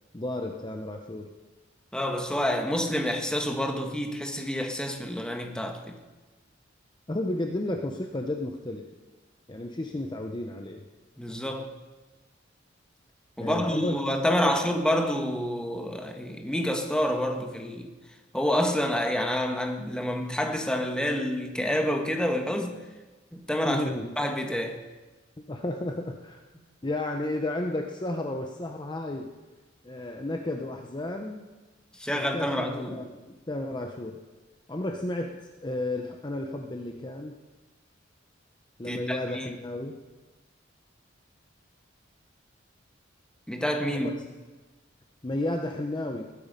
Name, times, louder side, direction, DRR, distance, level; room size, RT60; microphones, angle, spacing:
voice 1, 0.1-1.3 7.1-8.9 9.5-10.9 13.4-14.0 14.3-14.5 23.6-24.2 25.5-26.4 26.8-29.3 29.8-31.5 32.1-34.2 34.7-37.4 38.8-40.0 43.9-44.2 45.2-46.2, left 1 dB, 25° left, 0.8 m, -32 dB
voice 2, 1.9-6.0 11.2-11.7 13.4-17.9 18.3-22.8 23.3-23.8 24.2-24.8 32.0-33.0 38.9-39.5 43.5-44.1, equal, 5° left, 1.4 m, -28 dB
20.0 x 9.6 x 5.3 m
head